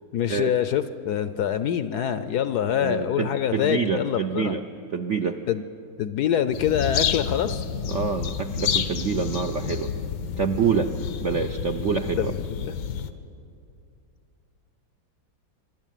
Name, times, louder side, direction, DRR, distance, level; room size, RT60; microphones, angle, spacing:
voice 1, 0.1-4.5 5.5-5.6 6.0-7.6 12.2-12.7, left 9 dB, 65° left, 12 dB, 1.0 m, -25 dB
voice 2, 2.8-4.6 4.9-5.4 7.9-9.9 10.4-10.9 11.2-12.3, right 6 dB, 65° right, 5 dB, 0.7 m, -26 dB
sound 1, 6.5-13.1, left 8 dB, 90° left, 1.7 m, -29 dB
25.5 x 12.5 x 9.1 m, 2.5 s
omnidirectional pair, 2.1 m